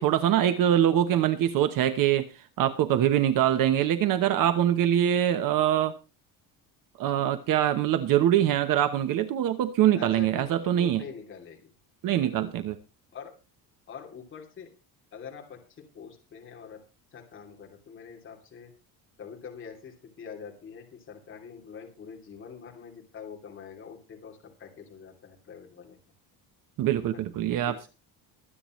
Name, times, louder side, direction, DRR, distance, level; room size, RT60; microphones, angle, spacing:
voice 1, 0.0-5.9 7.0-11.0 12.0-12.7 26.8-27.7, right 11 dB, 55° right, 10 dB, 1.0 m, -24 dB
voice 2, 9.8-11.7 12.2-12.4 13.1-13.3 13.9-14.7 15.1-16.8 17.1-18.7 19.2-26.0 27.1-27.2 27.6-27.9, left 6 dB, 30° left, 0 dB, 2.9 m, -45 dB
23.5 x 8.7 x 3.1 m, 0.29 s
cardioid pair, 170°, 40 cm